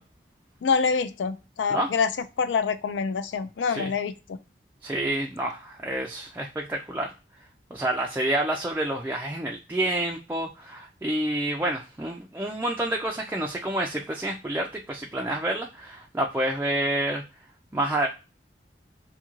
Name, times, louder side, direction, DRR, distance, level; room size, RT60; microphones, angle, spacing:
voice 1, 0.6-2.1 2.4-4.4, left 5 dB, 85° left, 12 dB, 0.4 m, -26 dB
voice 2, 4.8-7.1 7.7-17.2 17.7-18.1, right 1 dB, 10° right, 0 dB, 0.3 m, -28 dB
2.7 x 2.4 x 2.9 m, 0.30 s
head